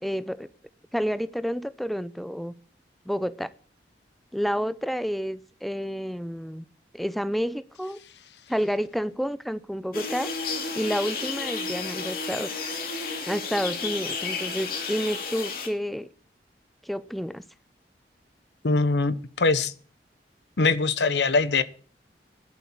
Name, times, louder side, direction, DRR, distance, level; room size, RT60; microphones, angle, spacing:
voice 1, 0.0-0.5 0.9-2.5 3.1-3.5 4.3-6.7 6.9-8.0 8.5-10.3 10.8-12.5 13.3-16.1 16.8-17.4, equal, ahead, 0.5 m, -29 dB
sound 1, 9.9-15.7, left 4 dB, 55° left, 2.8 m, -32 dB
voice 2, 18.6-19.7 20.6-21.6, left 3 dB, 75° left, 0.9 m, -22 dB
11.5 x 8.5 x 8.5 m
head